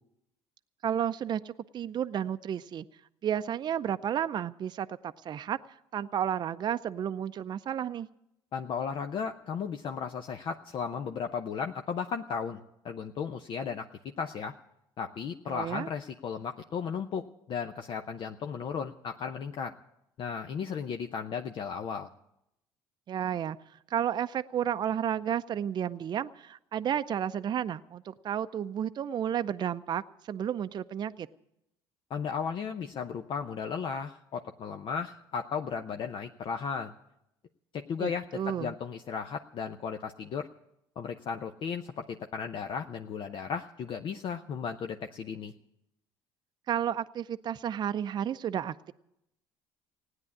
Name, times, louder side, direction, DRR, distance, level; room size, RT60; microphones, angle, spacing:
voice 1, 0.8-2.8 3.2-5.6 5.9-8.1 15.5-15.9 23.1-23.6 23.9-31.3 38.0-38.7 46.7-48.9, right 9 dB, 45° right, 11 dB, 0.5 m, -32 dB
voice 2, 8.5-13.9 14.2-14.5 15.0-19.7 20.2-22.1 32.1-36.9 37.7-40.5 41.0-45.5, left 6 dB, 55° left, 5 dB, 0.7 m, -35 dB
16.5 x 9.6 x 8.6 m, 0.84 s
supercardioid pair, 70°, 10 cm